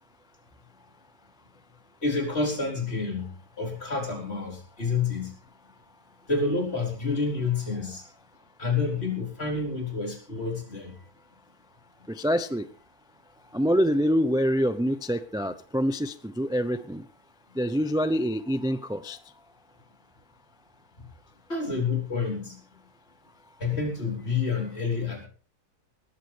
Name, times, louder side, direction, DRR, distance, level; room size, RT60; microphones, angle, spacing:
voice 1, 2.0-5.3 6.3-8.0 8.6-10.9 21.5-22.6 23.6-25.3, left 4 dB, 40° left, 2 dB, 4.5 m, -29 dB
voice 2, 12.1-12.7 13.5-17.0 17.6-19.2, equal, 5° right, 12 dB, 0.4 m, -26 dB
19.5 x 14.5 x 3.4 m, 0.38 s
omnidirectional pair, 1.6 m